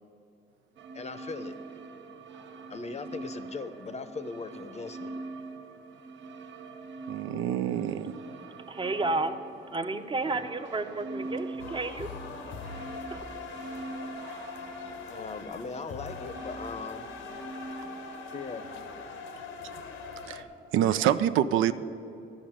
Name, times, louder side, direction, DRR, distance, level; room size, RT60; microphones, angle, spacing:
sound 1, 0.8-19.0, right 3 dB, 65° right, 0.8 m, -44 dB
voice 1, 0.9-1.6 2.7-5.1 15.1-17.1 18.3-18.7, left 4 dB, 35° left, 0.7 m, -39 dB
voice 2, 7.1-8.1 20.3-20.4 20.7-21.7, right 11 dB, 85° right, 0.4 m, -26 dB
voice 3, 8.7-9.3 9.7-12.1 13.1-13.2, right 2 dB, 25° right, 0.7 m, -31 dB
sound 2, 11.6-20.4, left 5 dB, 90° left, 1.0 m, -42 dB
12.5 x 5.2 x 8.8 m
cardioid pair, 90°, 20 cm